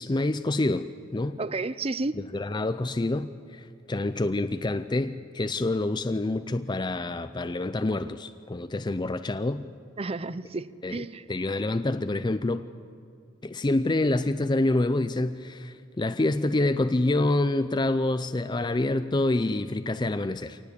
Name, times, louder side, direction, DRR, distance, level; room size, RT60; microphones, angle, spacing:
voice 1, 0.0-1.4 2.2-9.6 10.8-11.0 11.3-12.7 13.4-20.6, left 2 dB, 20° left, 11 dB, 0.5 m, -27 dB
voice 2, 1.4-2.2 10.0-11.2, right 3 dB, 30° right, 16 dB, 0.5 m, -31 dB
24.5 x 19.0 x 8.3 m, 2.5 s
head